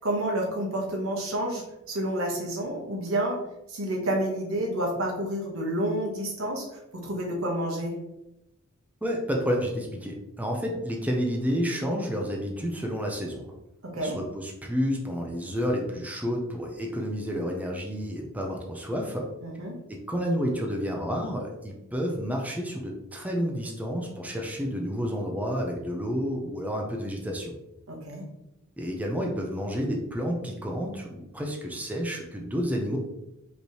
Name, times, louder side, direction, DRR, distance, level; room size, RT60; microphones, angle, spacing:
voice 1, 0.0-3.4 3.7-7.9 13.9-14.2 19.4-19.7 27.9-28.3, right 1 dB, 85° right, -1 dB, 1.3 m, -29 dB
voice 2, 9.0-13.5 14.0-19.3 19.9-27.5 28.8-33.0, equal, 5° right, 0 dB, 0.6 m, -30 dB
5.2 x 3.3 x 3.1 m, 0.89 s
head